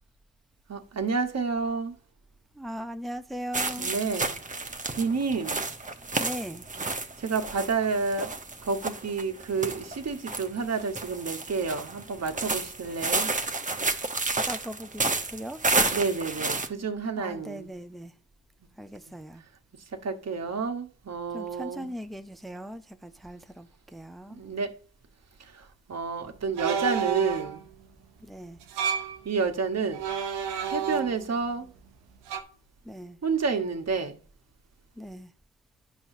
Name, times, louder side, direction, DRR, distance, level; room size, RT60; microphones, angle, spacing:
voice 1, 0.7-1.9 3.8-4.3 4.9-5.7 7.2-8.3 8.6-13.3 15.9-17.7 19.0-19.1 20.0-21.9 24.3-24.7 25.5-27.6 29.2-30.0 30.7-31.7 33.2-34.2, right 4 dB, 40° right, 1.3 m, -30 dB
voice 2, 2.5-3.9 6.2-6.7 14.3-15.6 17.2-18.1 18.8-19.4 21.3-24.4 28.2-28.6 32.8-33.2 35.0-35.3, equal, ahead, 0.6 m, -39 dB
sound 1, 3.5-16.7, right 3 dB, 20° right, 1.0 m, -31 dB
sound 2, 26.6-27.6 28.6-29.2 29.9-31.4 32.3-32.4, right 8 dB, 85° right, 0.9 m, -30 dB
10.0 x 5.5 x 2.7 m
hypercardioid pair, 40°, 40 cm